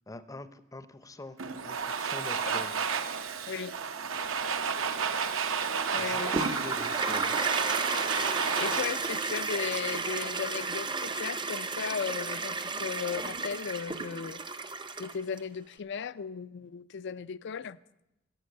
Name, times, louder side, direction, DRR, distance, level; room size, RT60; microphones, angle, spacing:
voice 1, 0.1-1.4 1.6-2.7 6.0-7.4, left 2 dB, 15° left, 0.6 m, -44 dB
Domestic sounds home sounds, 1.4-10.3, right 6 dB, 75° right, 1.0 m, -32 dB
voice 2, 5.9-6.4 8.3-14.4 15.0-17.8, left 6 dB, 60° left, 0.4 m, -36 dB
Toilet flush, 6.2-15.4, right 4 dB, 25° right, 0.6 m, -33 dB
14.0 x 7.5 x 9.1 m
head